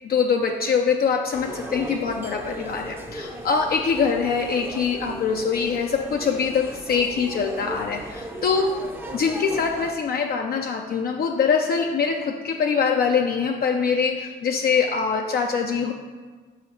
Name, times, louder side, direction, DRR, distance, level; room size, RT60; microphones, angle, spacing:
voice 1, 0.1-8.8 9.1-15.9, left 5 dB, 50° left, 2 dB, 0.5 m, -23 dB
sound 1, 1.3-9.9, right 1 dB, 10° right, 0.6 m, -37 dB
5.6 x 3.9 x 4.5 m, 1.4 s
cardioid pair, 90°, 20 cm